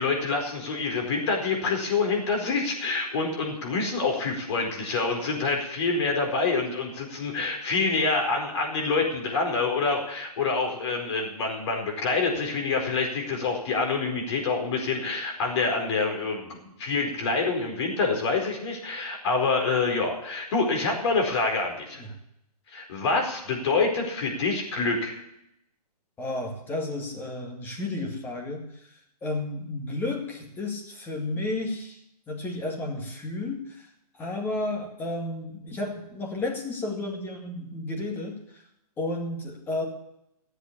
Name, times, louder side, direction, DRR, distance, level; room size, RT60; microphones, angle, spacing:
voice 1, 0.0-22.0 22.7-25.2, left 4 dB, 45° left, 2 dB, 4.5 m, -26 dB
voice 2, 26.2-28.7 29.2-32.0 32.3-33.7 34.2-38.4 39.0-39.8, left 2 dB, 10° left, 1 dB, 2.2 m, -32 dB
14.5 x 7.9 x 8.6 m, 0.79 s
hypercardioid pair, 155°, 20 cm